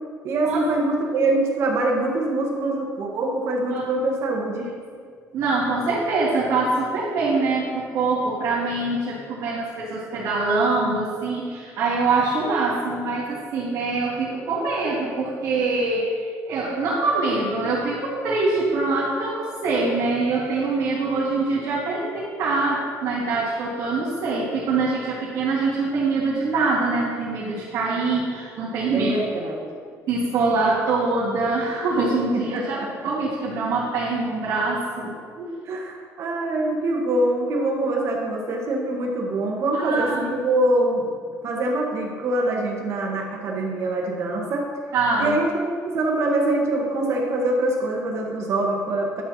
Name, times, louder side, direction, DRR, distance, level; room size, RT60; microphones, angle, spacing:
voice 1, 0.2-4.7 28.9-29.6 32.3-33.1 35.6-41.1 41.4-44.6 45.2-45.7 45.9-49.2, right 2 dB, 50° right, 0 dB, 1.5 m, -24 dB
voice 2, 5.3-29.2 30.1-35.6 39.7-40.4 44.9-45.4, right 3 dB, 70° right, -9 dB, 2.4 m, -24 dB
11.0 x 4.5 x 6.2 m, 2.1 s
cardioid pair, 155°, 6 cm